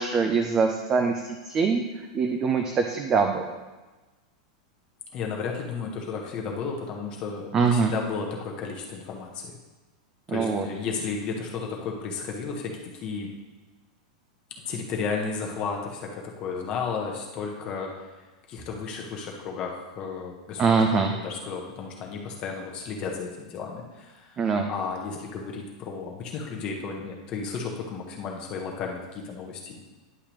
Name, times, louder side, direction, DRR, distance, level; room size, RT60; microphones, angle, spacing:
voice 1, 0.0-1.8 2.1-3.4 7.5-7.9 10.3-10.7 20.6-21.1 24.4-24.7, right 5 dB, 15° right, 4 dB, 0.3 m, -23 dB
voice 2, 5.1-9.5 10.3-13.3 14.7-18.1 18.5-20.6 20.9-29.8, left 5 dB, 25° left, 0 dB, 0.8 m, -33 dB
9.9 x 6.5 x 3.0 m, 1.2 s
supercardioid pair, 180°, 4 cm